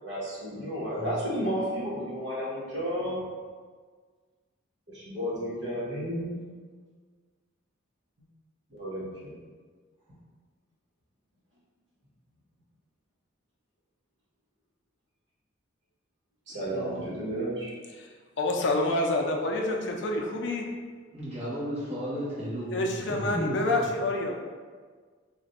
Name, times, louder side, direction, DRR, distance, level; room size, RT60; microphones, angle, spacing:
voice 1, 0.0-3.2 4.9-6.4 8.7-9.3 16.5-17.7, equal, 65° right, -7 dB, 1.0 m, -32 dB
voice 2, 0.9-1.3 16.7-17.1 21.1-23.6, equal, 30° right, -10 dB, 1.0 m, -34 dB
voice 3, 18.4-20.7 22.7-24.3, left 2 dB, 65° left, 1 dB, 0.4 m, -27 dB
2.5 x 2.2 x 4.0 m, 1.5 s
head